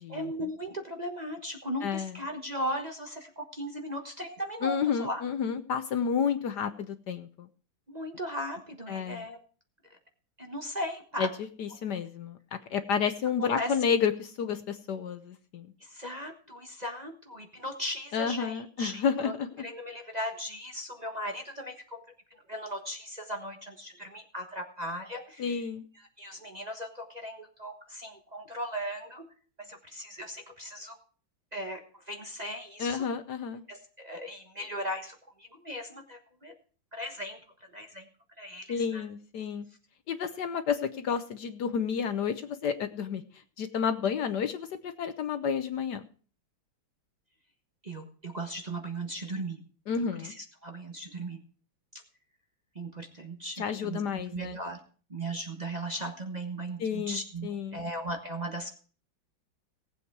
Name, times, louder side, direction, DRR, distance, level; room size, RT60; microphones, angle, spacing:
voice 1, 0.1-5.2 7.9-9.4 10.4-11.3 13.4-13.7 15.9-19.3 19.6-22.0 22.5-25.4 26.2-29.3 29.6-31.0 31.5-33.0 33.7-36.5 36.9-37.4 37.7-38.0 38.4-39.0 47.8-49.6 50.2-51.4 52.7-54.0 54.3-54.8 55.1-58.7, equal, 25° right, 2 dB, 1.2 m, -37 dB
voice 2, 1.8-2.2 4.6-7.5 8.9-9.3 11.2-15.7 18.1-19.7 25.4-25.8 32.8-33.6 38.7-39.6 40.1-43.2 43.6-46.0 49.9-50.3 53.6-54.6 56.8-57.8, left 6 dB, 65° left, 9 dB, 1.3 m, -31 dB
18.0 x 8.1 x 4.7 m, 0.41 s
omnidirectional pair, 2.2 m